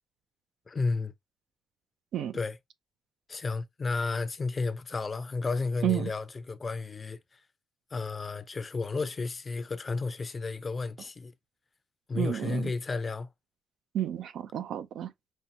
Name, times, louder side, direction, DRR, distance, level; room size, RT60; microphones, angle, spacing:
voice 1, 0.7-1.1 2.3-2.6 3.3-7.2 7.9-11.3 12.1-13.3, left 3 dB, 30° left, 0.5 m, -32 dB
voice 2, 12.1-12.7 13.9-15.1, right 11 dB, 75° right, 0.5 m, -31 dB
5.4 x 2.2 x 2.8 m
cardioid pair, 90°, 0 cm